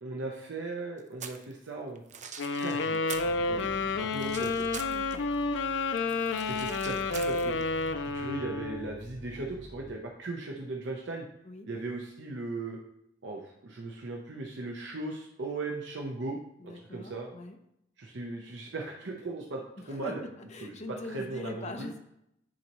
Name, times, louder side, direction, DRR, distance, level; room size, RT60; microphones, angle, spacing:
voice 1, 0.0-2.0 2.6-4.7 6.2-7.5 8.1-11.3 11.7-12.8 13.2-16.4 16.6-17.3 18.0-19.6 19.9-20.2 20.6-21.9, right 2 dB, 70° right, 0 dB, 0.8 m, -38 dB
sound 1, 1.0-1.5 1.9-3.3 3.6-5.3 5.7-7.9, right 7 dB, 40° right, 0.6 m, -44 dB
sound 2, 2.4-8.9, left 3 dB, 75° left, 0.4 m, -30 dB
sound 3, 3.1-9.9, equal, 15° left, 2.5 m, -49 dB
voice 2, 4.9-5.3 11.4-11.7 16.6-17.6 19.8-22.0, left 2 dB, 40° left, 4 dB, 0.8 m, -43 dB
10.0 x 4.1 x 3.0 m, 0.79 s
head